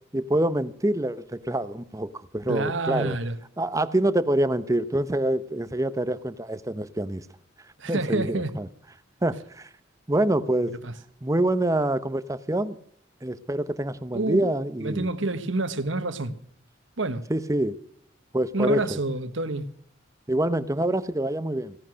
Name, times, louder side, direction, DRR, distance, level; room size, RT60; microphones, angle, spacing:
voice 1, 0.1-3.2 3.6-7.3 7.8-8.7 9.2-9.7 10.1-10.7 11.2-12.8 13.2-15.1 17.3-17.8 18.3-19.0 20.3-21.8, right 1 dB, 15° right, 0.8 m, -26 dB
voice 2, 2.5-3.4 7.8-8.5 10.8-10.9 14.1-14.5 14.8-16.3 17.0-17.3 18.5-19.7, right 2 dB, 75° right, 1.3 m, -28 dB
16.5 x 11.0 x 6.4 m
head